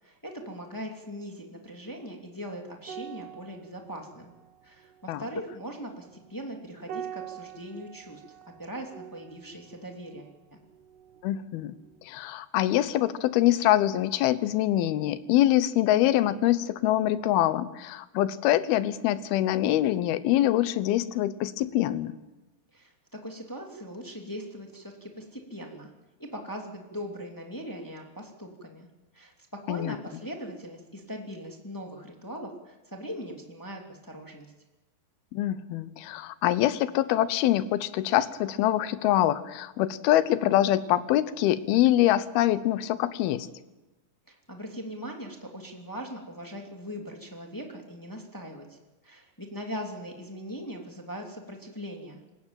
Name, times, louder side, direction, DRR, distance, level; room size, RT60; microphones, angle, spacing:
voice 1, 0.0-4.3 4.6-8.2 8.6-10.6 22.7-25.9 26.2-28.9 29.1-34.5 44.3-48.8 49.0-52.2, equal, 5° left, 1 dB, 1.5 m, -40 dB
sound 1, 2.8-11.6 11.8-12.1, right 9 dB, 70° right, 2.2 m, -45 dB
voice 2, 11.2-22.1 29.7-30.0 35.3-43.5, left 13 dB, 75° left, 14 dB, 2.6 m, -24 dB
27.0 x 15.0 x 8.9 m, 1.1 s
omnidirectional pair, 4.9 m